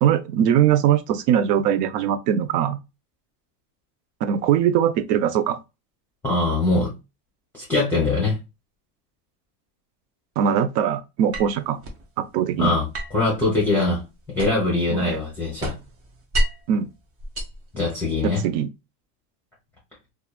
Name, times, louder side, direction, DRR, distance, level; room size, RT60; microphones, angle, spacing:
voice 1, 0.0-2.8 4.2-5.6 10.4-11.8 12.2-12.7 14.9-15.2 16.7-16.9 18.2-18.7, right 9 dB, 75° right, 0.6 m, -21 dB
voice 2, 6.2-6.9 7.5-8.4 12.6-12.9 13.1-14.0 14.3-15.7 17.7-18.4, left 2 dB, 5° left, 0.7 m, -22 dB
sound 1, 11.3-12.0 12.9-14.8 15.1-16.7 17.2-18.3, right 1 dB, 30° right, 0.5 m, -30 dB
2.8 x 2.4 x 2.3 m
cardioid pair, 150°, 47 cm